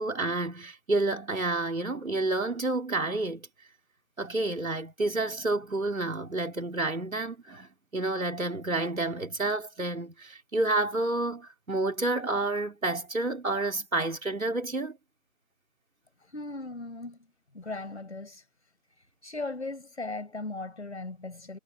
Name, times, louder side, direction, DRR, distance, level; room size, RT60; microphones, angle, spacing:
voice 1, 0.0-3.5 4.2-15.0, right 2 dB, 85° right, 4.4 m, -29 dB
voice 2, 16.2-17.3 17.5-18.4 19.2-21.6, left 2 dB, 55° left, 6.9 m, -38 dB
figure-of-eight pair, 170°, 40 cm